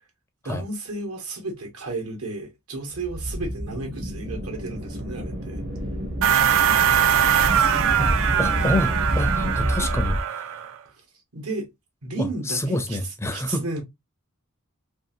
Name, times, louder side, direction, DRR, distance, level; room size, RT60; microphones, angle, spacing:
voice 1, 0.4-5.6 11.3-11.7 12.0-13.0 13.3-13.8, right 2 dB, 80° right, 1.2 m, -33 dB
sound 1, 2.9-10.2, equal, 45° right, 0.8 m, -28 dB
sound 2, 6.2-10.7, right 9 dB, 65° right, 0.4 m, -21 dB
voice 2, 8.4-10.6 12.2-13.6, left 1 dB, 10° left, 0.4 m, -28 dB
2.7 x 2.4 x 2.6 m
head